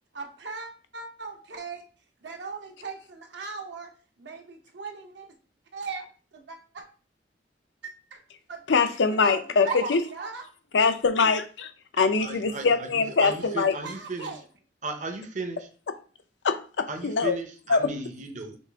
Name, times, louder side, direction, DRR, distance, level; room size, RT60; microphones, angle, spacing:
voice 1, 0.1-1.8 2.2-3.9 4.2-5.3 5.7-6.8 7.8-8.2 8.5-10.5 13.0-14.4, right 4 dB, 75° right, 0.9 m, -40 dB
voice 2, 8.7-10.0 10.7-11.7 12.0-13.8 16.4-17.3 17.7-17.9, left 4 dB, 80° left, 0.6 m, -23 dB
voice 3, 9.7-10.3 12.0-14.3 14.8-15.7 16.9-18.6, right 3 dB, 40° right, 0.7 m, -35 dB
6.1 x 2.5 x 3.4 m
head